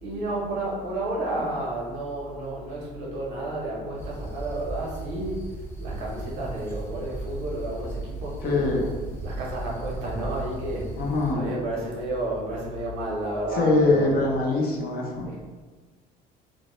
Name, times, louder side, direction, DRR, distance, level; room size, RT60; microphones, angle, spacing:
voice 1, 0.0-8.8 9.2-11.0 11.3-14.1 15.2-15.4, right 1 dB, 75° right, -4 dB, 0.8 m, -31 dB
sound 1, 4.0-11.3, right 2 dB, 10° left, 0.6 m, -36 dB
voice 2, 8.4-8.9 10.9-11.4 13.5-15.3, left 2 dB, 55° left, -1 dB, 0.6 m, -23 dB
2.2 x 2.0 x 2.9 m, 1.4 s
supercardioid pair, 95°, 18 cm